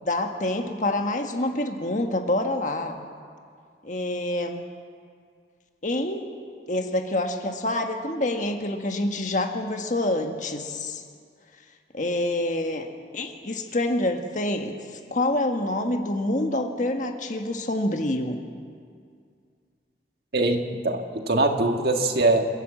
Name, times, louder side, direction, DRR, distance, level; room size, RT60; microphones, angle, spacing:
voice 1, 0.0-3.0 3.8-4.6 5.8-6.3 6.7-11.0 11.9-12.9 13.1-18.4, left 1 dB, 45° left, 4 dB, 1.5 m, -27 dB
voice 2, 20.3-22.5, right 2 dB, 60° right, 4 dB, 1.7 m, -22 dB
28.0 x 12.5 x 7.8 m, 2.2 s
head